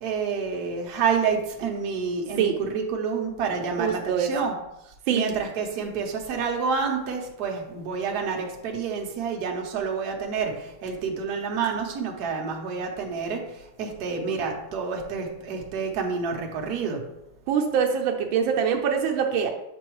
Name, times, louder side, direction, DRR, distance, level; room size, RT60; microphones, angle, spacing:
voice 1, 0.0-4.6 5.1-17.0, right 5 dB, 60° right, 1 dB, 1.3 m, -28 dB
voice 2, 3.8-4.3 5.1-5.4 17.5-19.5, right 7 dB, 85° right, 4 dB, 1.4 m, -24 dB
6.9 x 4.6 x 3.0 m, 0.89 s
omnidirectional pair, 2.2 m